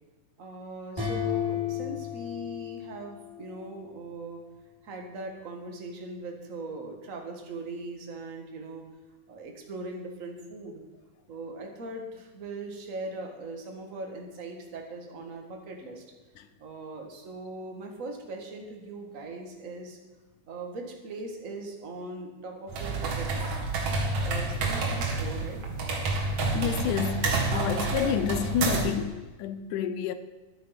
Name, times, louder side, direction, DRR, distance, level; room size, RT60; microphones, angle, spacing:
voice 1, 0.4-4.4 4.8-8.8 9.3-10.8 11.3-16.0 16.6-20.0 20.5-23.6 24.2-25.6, right 2 dB, 40° right, 1.2 m, -40 dB
sound 1, 1.0-3.7, left 9 dB, 15° left, 5.1 m, -33 dB
sound 2, 22.7-29.0, right 3 dB, 60° right, 3.0 m, -29 dB
voice 2, 26.5-30.1, left 9 dB, 75° left, 2.0 m, -29 dB
11.5 x 9.1 x 5.8 m
omnidirectional pair, 3.9 m